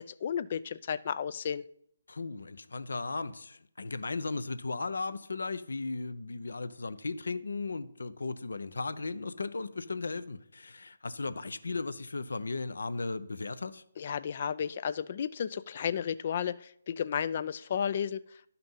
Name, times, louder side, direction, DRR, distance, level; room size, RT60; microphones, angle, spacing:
voice 1, 0.0-1.6 14.0-18.2, left 8 dB, 45° left, 0.4 m, -33 dB
voice 2, 2.1-13.8, left 3 dB, 70° left, 0.7 m, -36 dB
11.0 x 5.8 x 5.6 m
figure-of-eight pair, 145°, 0 cm